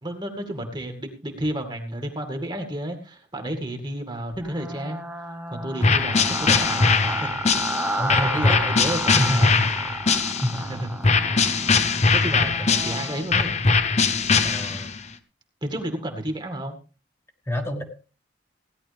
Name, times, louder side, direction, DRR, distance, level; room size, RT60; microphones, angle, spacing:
voice 1, 0.0-5.0 5.5-6.9 7.2-7.8 8.2-9.6 10.5-10.9 12.1-13.6 15.6-16.8, right 1 dB, 25° right, 4 dB, 2.1 m, -31 dB
sound 1, 4.3-13.2, right 1 dB, 10° right, 1.0 m, -32 dB
sound 2, 5.8-10.6 11.0-15.0, left 4 dB, 40° left, 1.0 m, -21 dB
voice 2, 8.0-8.6 9.2-9.6 10.4-10.5 14.4-14.9 17.5-17.8, left 1 dB, 15° left, 2 dB, 1.8 m, -27 dB
17.0 x 11.0 x 3.5 m, 0.35 s
head